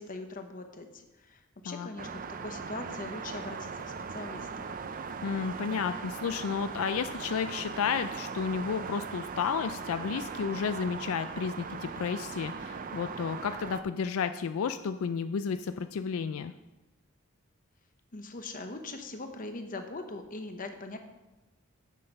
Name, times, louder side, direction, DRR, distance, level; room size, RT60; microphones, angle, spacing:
voice 1, 0.0-4.7 18.1-21.0, left 2 dB, 40° left, 6 dB, 0.9 m, -41 dB
sound 1, 2.0-13.8, right 5 dB, 40° right, 0.4 m, -39 dB
voice 2, 5.2-16.5, left 6 dB, 75° left, 10 dB, 0.4 m, -32 dB
7.8 x 7.4 x 5.4 m, 1.1 s
head